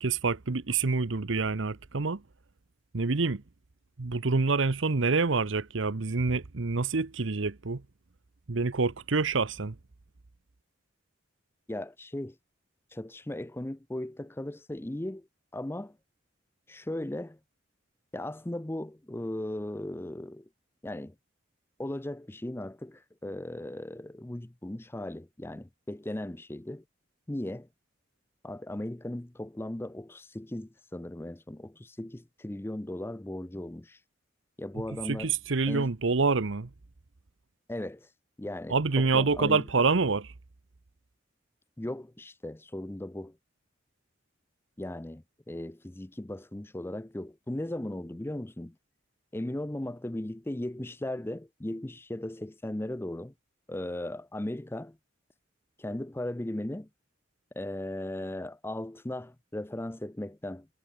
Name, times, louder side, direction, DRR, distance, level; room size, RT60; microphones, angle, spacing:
voice 1, 0.0-2.2 2.9-3.4 4.0-7.8 8.5-9.7 35.0-36.7 38.7-40.3, right 4 dB, 70° right, 0.9 m, -27 dB
voice 2, 11.7-12.3 12.9-15.3 15.5-16.0 16.7-17.4 18.1-20.4 20.8-21.1 21.8-26.8 27.3-27.7 28.4-34.0 34.6-35.3 35.7-35.9 37.7-38.1 38.4-39.9 41.8-43.4 44.8-48.7 49.3-53.3 53.7-55.0 55.8-56.9 57.5-60.7, left 1 dB, 10° left, 0.5 m, -37 dB
head